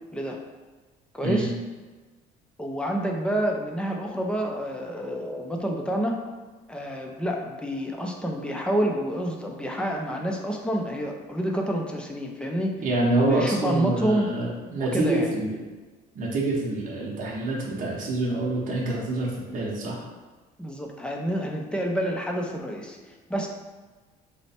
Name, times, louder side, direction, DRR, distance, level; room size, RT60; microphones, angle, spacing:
voice 1, 1.1-1.5 2.6-6.2 6.7-12.8 13.2-14.3 14.8-15.3 20.6-23.5, equal, 5° left, 1 dB, 0.5 m, -28 dB
voice 2, 12.8-15.6 16.1-20.0, right 2 dB, 50° right, -4 dB, 0.8 m, -26 dB
3.1 x 2.1 x 4.2 m, 1.3 s
cardioid pair, 110°, 17 cm